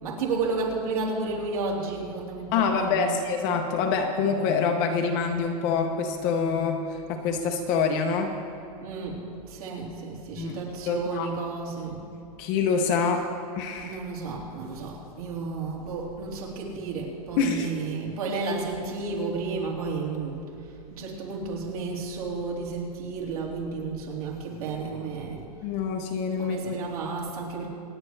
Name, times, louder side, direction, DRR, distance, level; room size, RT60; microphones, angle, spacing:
voice 1, 0.0-3.2 8.8-9.2 9.5-12.0 13.8-20.4 20.9-25.4 26.4-27.7, right 4 dB, 65° right, -2 dB, 3.4 m, -32 dB
voice 2, 2.5-8.3 10.4-10.6 10.9-11.3 12.4-13.3 13.6-14.0 17.4-17.7 25.6-26.7, left 5 dB, 20° left, 4 dB, 0.6 m, -26 dB
26.5 x 9.8 x 3.2 m, 2.6 s
supercardioid pair, 180°, 20 cm